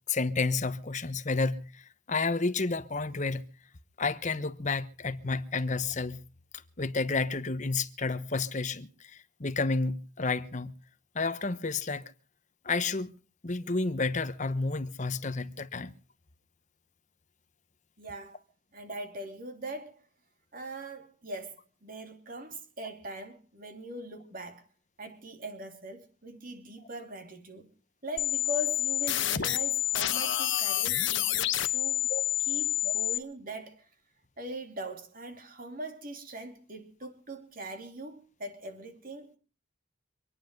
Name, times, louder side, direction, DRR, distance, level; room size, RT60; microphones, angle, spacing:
voice 1, 0.1-3.4 4.0-6.2 6.8-10.7 11.1-12.0 12.6-13.1 13.4-15.9 32.1-32.2 32.8-32.9, left 3 dB, 35° left, 1.0 m, -31 dB
voice 2, 18.0-18.4 18.7-20.0 20.5-24.7 25.0-27.7 28.0-32.1 32.4-33.9 34.4-39.4, right 1 dB, 45° right, 2.9 m, -41 dB
sound 1, 28.2-33.2, left 13 dB, 65° left, 1.1 m, -28 dB
26.0 x 9.8 x 5.2 m
head